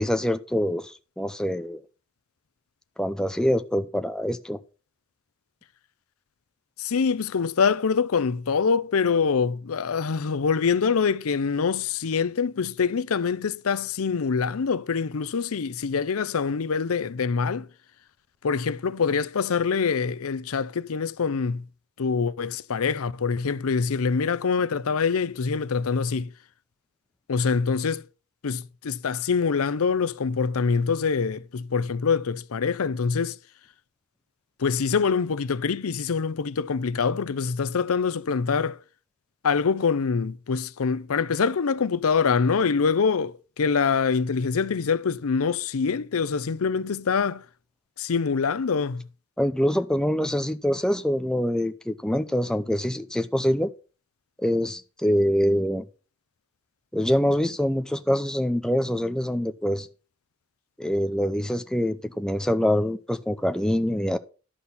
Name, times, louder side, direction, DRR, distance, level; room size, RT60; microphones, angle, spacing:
voice 1, 0.0-1.8 3.0-4.6 49.4-53.7 54.4-55.8 56.9-59.9 60.8-64.2, equal, 5° left, 0.5 m, -25 dB
voice 2, 6.8-17.7 18.4-21.6 22.0-26.3 27.3-28.0 28.4-33.4 34.6-38.8 39.4-47.4 48.0-49.0, left 5 dB, 70° left, 0.6 m, -25 dB
11.5 x 4.2 x 7.0 m
head